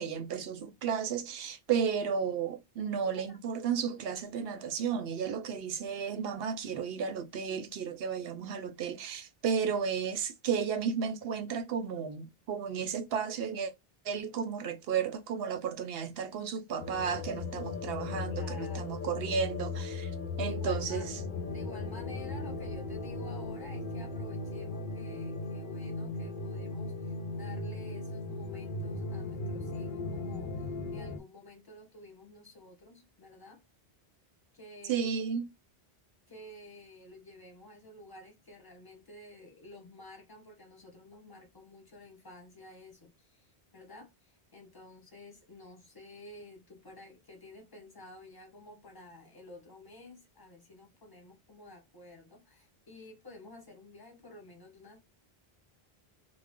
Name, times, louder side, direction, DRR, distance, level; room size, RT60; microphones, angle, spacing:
voice 1, 0.0-13.7 14.0-21.1 34.9-35.5, right 7 dB, 75° right, 0.8 m, -33 dB
voice 2, 3.0-3.4 4.9-5.0 18.3-19.1 20.4-21.1 21.5-33.6 34.5-35.1 36.3-55.0, left 1 dB, 20° left, 1.0 m, -51 dB
sound 1, 16.8-31.2, left 3 dB, 60° left, 0.6 m, -37 dB
2.4 x 2.1 x 3.5 m
omnidirectional pair, 1.0 m